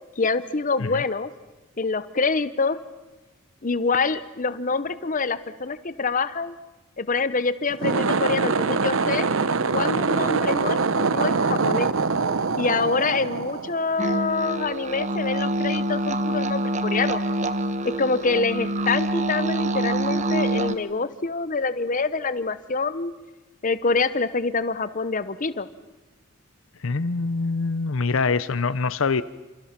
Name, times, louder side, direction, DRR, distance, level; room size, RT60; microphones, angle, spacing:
voice 1, 0.2-1.3 1.8-2.8 3.6-6.5 7.0-9.3 9.7-11.9 12.6-17.2 17.8-23.1 23.6-25.7, left 4 dB, 40° left, 13 dB, 0.9 m, -26 dB
sound 1, 7.7-14.2, right 4 dB, 90° right, 0.9 m, -24 dB
sound 2, 14.0-20.8, right 1 dB, 35° right, 1.1 m, -26 dB
voice 2, 26.8-29.2, left 4 dB, 85° left, 16 dB, 0.7 m, -24 dB
27.5 x 27.0 x 6.0 m, 1.2 s
head